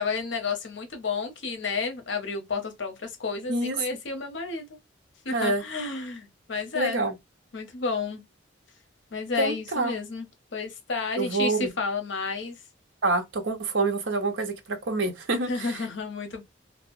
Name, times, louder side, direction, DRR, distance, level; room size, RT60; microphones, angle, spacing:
voice 1, 0.0-4.8 5.2-7.0 7.5-8.2 9.1-12.6 15.5-16.4, left 4 dB, 65° left, 0.7 m, -31 dB
voice 2, 5.3-5.6 6.7-7.2 9.4-9.9 11.2-11.7 13.0-15.9, right 2 dB, 70° right, 0.7 m, -27 dB
2.7 x 2.1 x 2.5 m
head